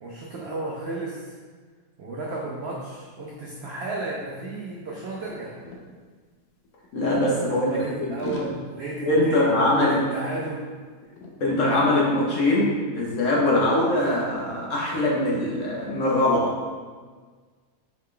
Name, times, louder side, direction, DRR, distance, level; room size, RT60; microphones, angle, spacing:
voice 1, 0.0-1.3 2.0-5.6 7.5-10.6, right 2 dB, 80° right, -3 dB, 0.5 m, -33 dB
sound 1, 2.6-2.8 3.0-5.8 6.6-7.9 8.2-10.8 11.0-11.7 12.2-12.4, left 2 dB, 85° left, 1.2 m, -42 dB
voice 2, 6.9-8.2 9.0-10.0 11.4-16.5, left 1 dB, 60° left, -4 dB, 0.9 m, -22 dB
4.8 x 2.2 x 3.6 m, 1.5 s
omnidirectional pair, 1.7 m